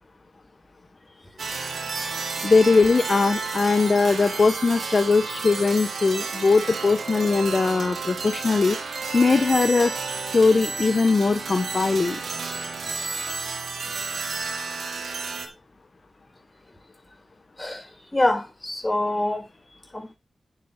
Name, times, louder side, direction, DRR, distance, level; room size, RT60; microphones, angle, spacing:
sound 1, 1.4-15.5, right 4 dB, 70° right, 4.2 m, -31 dB
voice 1, 2.4-10.0 10.3-12.2, left 4 dB, 50° left, 1.3 m, -20 dB
voice 2, 17.6-19.5 19.9-20.2, left 1 dB, 20° left, 6.9 m, -25 dB
11.5 x 9.7 x 3.9 m
supercardioid pair, 40°, 0 cm